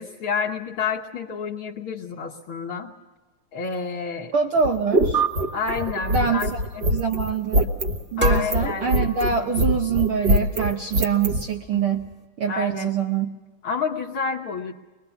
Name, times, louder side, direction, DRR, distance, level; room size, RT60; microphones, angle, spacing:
voice 1, 0.0-2.9 3.5-4.3 5.5-6.5 6.7-6.8 8.2-9.0 11.7-11.9 12.5-12.9 13.6-14.7, left 5 dB, 60° left, 0 dB, 1.6 m, -29 dB
voice 2, 4.3-5.2 6.1-6.6 6.9-7.7 8.1-12.1 12.4-13.4, right 6 dB, 70° right, 3 dB, 1.3 m, -24 dB
sound 1, 4.6-11.4, right 1 dB, 50° right, 1.4 m, -23 dB
sound 2, 5.1-7.9, right 9 dB, 30° right, 1.6 m, -31 dB
sound 3, 6.4-12.3, left 1 dB, 5° right, 0.9 m, -37 dB
22.5 x 22.0 x 6.9 m, 1.2 s
omnidirectional pair, 3.4 m